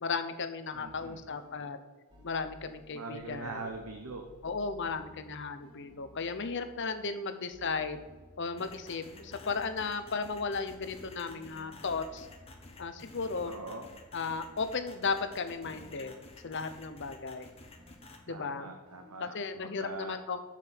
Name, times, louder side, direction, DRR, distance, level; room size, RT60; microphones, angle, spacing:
voice 1, 0.0-1.8 2.2-3.7 4.4-8.0 8.4-12.3 12.8-13.6 14.1-16.2 16.4-17.5 18.3-18.7 19.2-20.4, left 4 dB, 55° left, 9 dB, 0.8 m, -35 dB
sound 1, 0.7-1.8 2.1-8.8 9.1-13.1 13.5-17.2 17.8-19.4, equal, 20° right, 2.2 m, -58 dB
voice 2, 0.7-1.2 2.9-4.2 13.4-13.8 18.3-20.2, right 3 dB, 80° right, 3 dB, 0.9 m, -42 dB
sound 2, 8.6-18.2, left 2 dB, 25° left, 1.2 m, -51 dB
6.8 x 6.4 x 7.7 m, 1.3 s
head